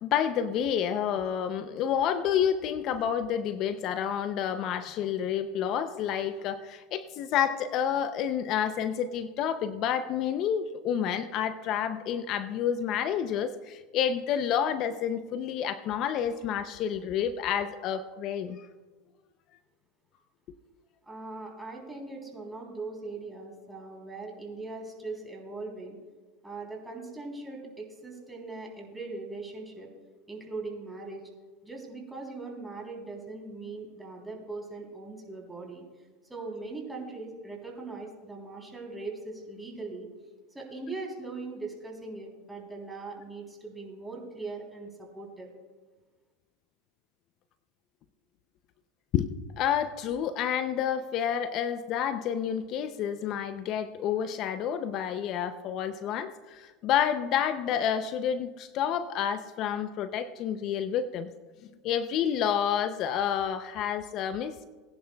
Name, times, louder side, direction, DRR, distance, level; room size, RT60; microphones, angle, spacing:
voice 1, 0.0-18.6 49.1-49.3 49.6-61.3 61.8-64.6, left 9 dB, 50° left, 11 dB, 0.6 m, -29 dB
voice 2, 21.0-26.0 26.4-29.9 30.3-31.3 31.6-35.8 36.3-40.1 40.5-45.5, right 3 dB, 10° right, -1 dB, 3.4 m, -40 dB
20.0 x 10.5 x 2.3 m, 1.3 s
supercardioid pair, 110°, 0 cm